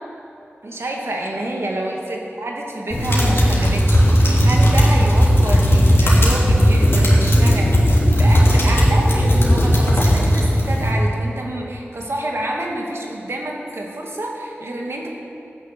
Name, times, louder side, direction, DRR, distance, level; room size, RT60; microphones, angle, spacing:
voice 1, 0.6-15.1, right 1 dB, 70° right, -1 dB, 2.1 m, -28 dB
sound 1, 2.9-10.9, equal, 60° left, 3.1 m, -15 dB
13.5 x 10.0 x 6.7 m, 2.9 s
wide cardioid pair, 65°, 5 cm